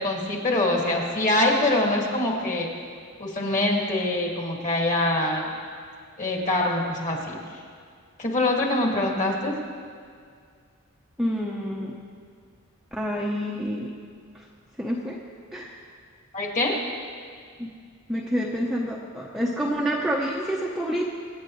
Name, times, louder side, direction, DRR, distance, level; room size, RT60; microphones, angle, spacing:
voice 1, 0.0-2.7 3.2-5.5 6.2-7.3 8.2-9.5 16.3-16.7, left 2 dB, 35° left, -1 dB, 2.0 m, -24 dB
voice 2, 11.2-12.0 13.0-13.9 14.3-14.4 14.8-15.2 15.5-15.8 17.6-17.7 18.1-21.1, equal, ahead, -3 dB, 0.8 m, -28 dB
25.0 x 9.0 x 3.1 m, 2.1 s
head